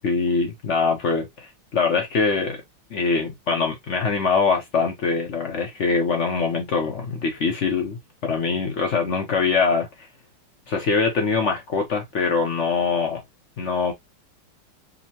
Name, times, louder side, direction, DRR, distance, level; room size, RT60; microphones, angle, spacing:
voice 1, 0.0-2.6 2.9-10.1 10.7-13.2 13.6-13.9, left 4 dB, 60° left, 0.7 m, -23 dB
5.4 x 2.1 x 2.8 m
omnidirectional pair, 2.3 m